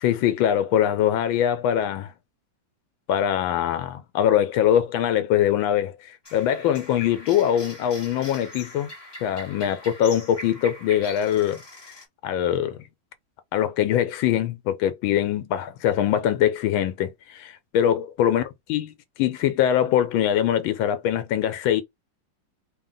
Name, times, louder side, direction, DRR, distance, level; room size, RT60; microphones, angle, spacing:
voice 1, 0.0-2.1 3.1-8.9 9.2-11.6 12.2-12.9 13.5-18.4 18.7-21.8, left 10 dB, 80° left, 1.4 m, -23 dB
sound 1, 6.2-12.0, left 1 dB, 15° left, 1.0 m, -42 dB
3.7 x 2.2 x 3.8 m
omnidirectional pair, 2.2 m